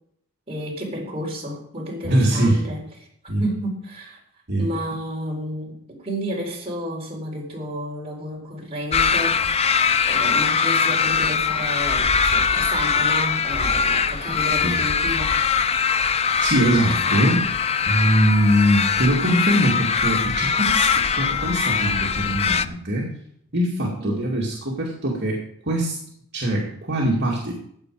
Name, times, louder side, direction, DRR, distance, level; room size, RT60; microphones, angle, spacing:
voice 1, 0.5-2.8 3.4-4.2 4.6-15.4 16.7-17.2 24.0-24.2, equal, 25° right, -2 dB, 4.1 m, -31 dB
voice 2, 2.0-2.6 3.3-3.4 4.5-4.6 14.6-14.8 16.4-17.5 17.9-23.1 23.5-26.0 26.3-27.5, right 1 dB, 50° right, -3 dB, 2.4 m, -22 dB
sound 1, 8.9-22.7, left 6 dB, 30° left, 0.4 m, -21 dB
15.0 x 9.0 x 4.9 m, 0.69 s
head